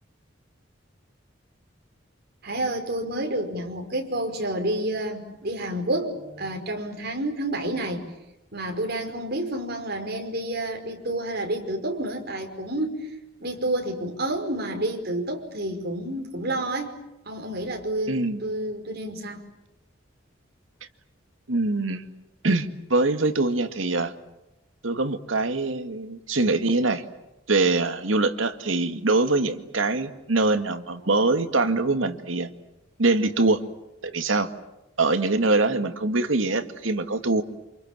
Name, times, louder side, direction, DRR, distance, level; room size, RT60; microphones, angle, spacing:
voice 1, 2.4-8.0 8.5-13.1 13.4-16.9 17.3-19.4, right 1 dB, 55° right, 3 dB, 5.3 m, -29 dB
voice 2, 18.1-18.4 21.5-22.1 22.4-24.1 24.8-27.0 27.5-32.5 33.0-33.6 34.0-34.5 35.0-37.4, right 2 dB, 80° right, 8 dB, 2.1 m, -23 dB
28.5 x 27.5 x 7.6 m, 0.94 s
head